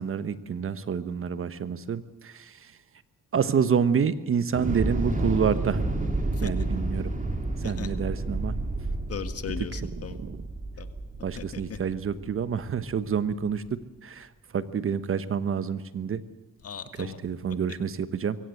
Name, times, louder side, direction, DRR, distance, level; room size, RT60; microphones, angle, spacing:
voice 1, 0.0-2.7 3.3-5.8 6.4-7.1 7.6-8.5 9.7-10.5 11.2-16.2 17.0-18.4, right 7 dB, 45° right, 14 dB, 1.2 m, -28 dB
Thunder / Explosion, 4.5-12.7, right 2 dB, 25° right, 3.0 m, -30 dB
voice 2, 9.1-10.2 10.8-10.9 11.4-11.8 16.6-17.2, left 8 dB, 50° left, 10 dB, 1.7 m, -37 dB
23.0 x 16.5 x 7.9 m, 1.2 s
cardioid pair, 90°, 30 cm